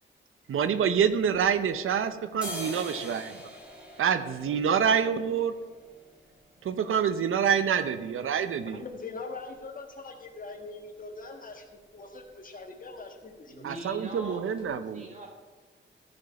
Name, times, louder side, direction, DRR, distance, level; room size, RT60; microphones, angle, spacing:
voice 1, 0.5-3.3 4.0-5.5 6.6-8.8 13.6-15.1, right 7 dB, 85° right, 11 dB, 0.6 m, -26 dB
sound 1, 1.0-1.9 2.2-9.9 10.3-10.4 10.6-11.2 11.5-11.7 12.0-12.2 12.5-13.2 13.5-13.7 14.2-14.3 14.6-14.7, left 1 dB, 5° right, 2.3 m, -45 dB
voice 2, 8.7-11.7 11.9-13.8, left 3 dB, 40° left, 3 dB, 1.5 m, -42 dB
voice 3, 13.5-15.3, right 1 dB, 35° right, -1 dB, 2.3 m, -43 dB
14.5 x 5.2 x 5.8 m, 1.3 s
wide cardioid pair, 135°, 21 cm